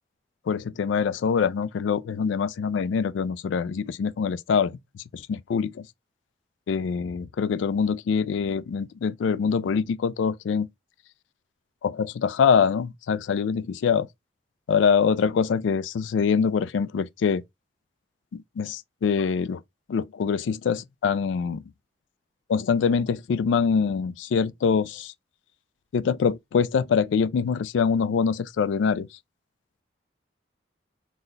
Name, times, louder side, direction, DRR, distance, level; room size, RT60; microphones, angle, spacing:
voice 1, 0.5-5.9 6.7-10.7 11.8-14.1 14.7-17.4 18.3-19.6 19.9-21.6 22.5-25.1 25.9-29.1, left 6 dB, 85° left, 0.3 m, -24 dB
4.1 x 2.1 x 3.8 m
head